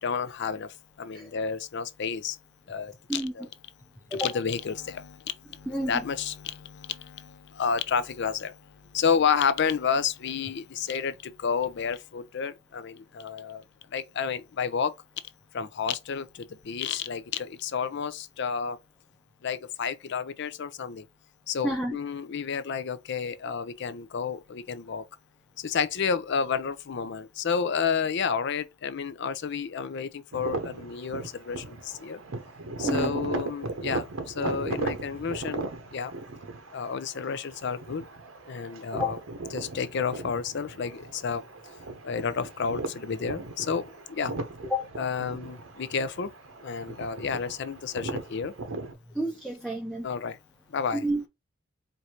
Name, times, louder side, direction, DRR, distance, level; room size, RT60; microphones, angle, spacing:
voice 1, 0.0-2.4 2.7-3.5 4.1-13.6 13.9-14.9 15.5-18.8 19.4-21.1 21.5-25.0 25.6-32.2 32.8-35.6 35.9-36.1 36.7-38.0 38.5-39.2 39.5-41.5 42.0-44.3 45.0-46.3 46.6-48.5 50.0-50.4 50.7-51.0, left 6 dB, 60° left, 0.5 m, -30 dB
voice 2, 21.6-22.0 32.8-33.2 39.0-39.1 44.7-44.9 49.2-50.1 50.9-51.2, equal, ahead, 0.6 m, -29 dB
sound 1, 30.3-48.9, right 3 dB, 80° right, 0.8 m, -37 dB
4.6 x 2.6 x 2.8 m
head